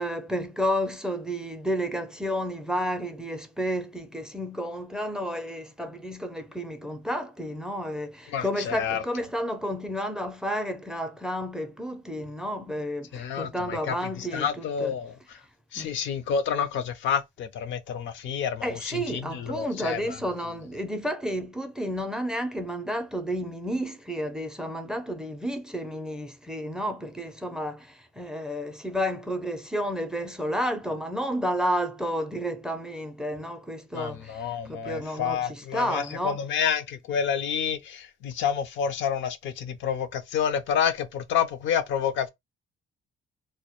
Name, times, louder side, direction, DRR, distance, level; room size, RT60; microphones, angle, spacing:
voice 1, 0.0-14.9 15.7-15.9 18.6-36.5, equal, 5° right, 0.4 m, -31 dB
voice 2, 8.3-9.0 13.1-13.9 14.3-15.1 15.7-20.0 33.9-42.3, left 7 dB, 70° left, 0.4 m, -29 dB
2.1 x 2.1 x 2.8 m
cardioid pair, 90°, 20 cm